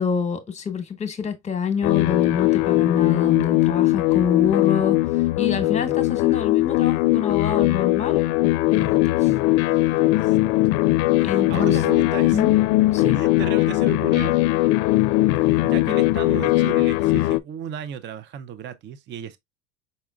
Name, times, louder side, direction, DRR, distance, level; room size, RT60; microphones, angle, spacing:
voice 1, 0.0-5.0 5.4-8.3 8.7-9.3 11.2-11.8 12.3-12.5 12.9-13.2, left 6 dB, 25° left, 1.1 m, -26 dB
sound 1, 1.8-17.4, left 18 dB, 70° left, 0.4 m, -20 dB
voice 2, 5.6-6.0 10.2-10.4 11.2-12.4 13.1-14.4 15.4-19.4, right 8 dB, 40° right, 0.6 m, -34 dB
5.4 x 3.6 x 2.3 m
supercardioid pair, 115°, 29 cm